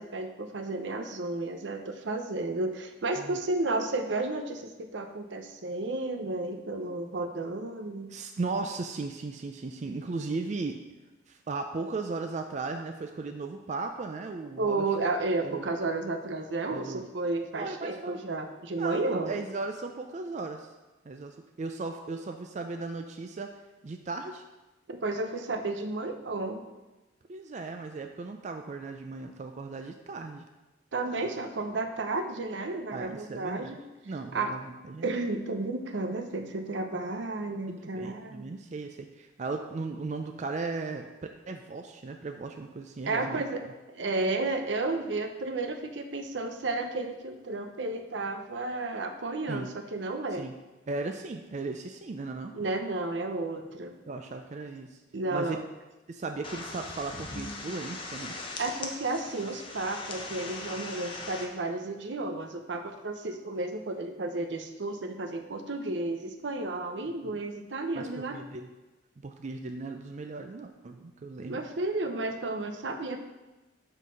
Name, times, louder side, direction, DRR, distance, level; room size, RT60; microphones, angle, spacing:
voice 1, 0.0-8.1 14.6-19.4 24.9-26.6 30.9-33.8 34.3-34.6 35.0-38.6 43.1-50.5 52.5-54.0 55.1-55.6 58.6-68.4 71.5-73.2, right 2 dB, 80° right, 6 dB, 0.7 m, -32 dB
voice 2, 8.1-10.8 11.3-14.8 15.4-15.7 16.7-17.0 17.5-18.2 18.8-20.7 21.1-23.5 23.8-24.4 27.3-30.4 32.9-33.8 34.1-35.1 37.7-41.1 41.5-43.4 49.5-49.7 50.3-50.5 50.9-52.5 54.1-55.0 55.3-55.6 56.1-58.4 67.2-67.4 67.9-68.7 69.2-71.6, right 3 dB, 40° right, 5 dB, 0.4 m, -36 dB
sound 1, 56.4-61.5, left 3 dB, 30° left, 0.8 m, -40 dB
7.4 x 3.9 x 5.5 m, 1.1 s
head